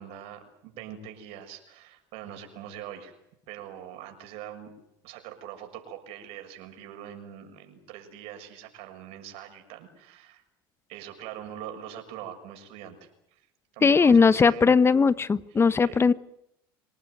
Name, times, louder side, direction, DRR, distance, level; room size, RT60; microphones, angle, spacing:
voice 1, 0.0-3.1 3.5-4.7 5.0-10.4 10.9-13.4 13.7-14.8 15.8-16.0, right 10 dB, 65° right, 5 dB, 6.7 m, -43 dB
voice 2, 13.8-16.1, left 5 dB, 20° left, 17 dB, 1.0 m, -19 dB
26.5 x 19.0 x 9.3 m, 0.78 s
supercardioid pair, 95°, 11 cm